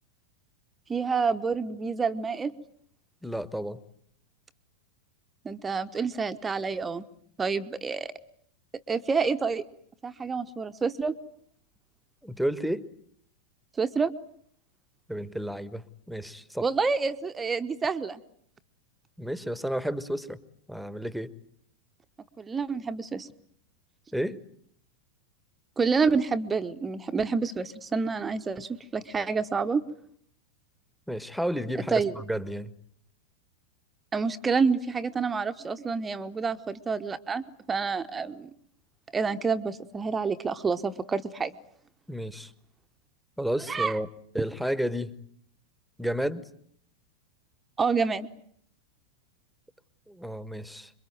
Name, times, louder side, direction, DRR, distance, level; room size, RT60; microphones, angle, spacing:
voice 1, 0.9-2.5 5.4-7.1 7.4-8.1 8.9-9.6 10.0-11.2 13.8-14.1 16.6-18.2 22.4-23.3 25.8-29.8 31.9-32.1 34.1-38.5 39.1-41.5 43.7-44.0 47.8-48.3, right 5 dB, 15° right, 10 dB, 1.1 m, -28 dB
voice 2, 3.2-3.8 12.2-12.9 15.1-16.7 19.2-20.4 20.7-21.3 24.1-24.4 31.1-32.7 42.1-42.5 43.4-44.1 44.3-45.2 46.0-46.5 50.1-50.9, equal, ahead, 17 dB, 1.3 m, -31 dB
27.0 x 23.0 x 9.3 m, 0.67 s
figure-of-eight pair, 90°, 0 cm